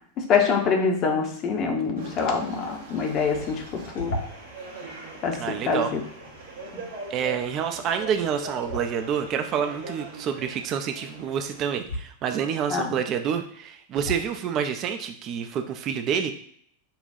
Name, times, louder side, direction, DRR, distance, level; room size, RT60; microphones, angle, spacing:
voice 1, 0.2-4.1 5.2-6.0 12.7-13.0, left 5 dB, 35° left, 2 dB, 0.8 m, -25 dB
sound 1, 2.0-11.6, right 2 dB, 65° right, 1.0 m, -41 dB
sound 2, 4.0-4.6 8.6-9.3 11.8-12.0 13.0-13.1 13.9-14.4, left 1 dB, 70° left, 0.9 m, -34 dB
voice 2, 5.4-5.9 7.1-16.3, right 8 dB, 35° right, 7 dB, 0.5 m, -28 dB
5.5 x 2.3 x 2.7 m, 0.63 s
figure-of-eight pair, 90°, 0 cm